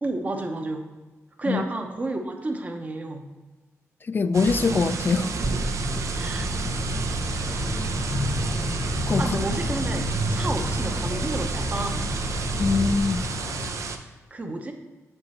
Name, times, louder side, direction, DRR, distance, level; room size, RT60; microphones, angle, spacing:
voice 1, 0.0-0.9 1.4-3.2 6.1-6.5 9.2-12.1 14.3-14.7, right 2 dB, 30° right, 5 dB, 0.8 m, -31 dB
voice 2, 4.1-5.3 9.1-9.4 12.6-13.2, left 4 dB, 40° left, 13 dB, 0.3 m, -23 dB
sound 1, 4.3-14.0, right 5 dB, 70° right, 0.6 m, -32 dB
sound 2, 5.4-13.0, equal, 15° left, 0.7 m, -29 dB
sound 3, 7.3-13.7, left 1 dB, 80° left, 0.9 m, -37 dB
7.1 x 5.3 x 4.2 m, 1.2 s
wide cardioid pair, 140°, 5 cm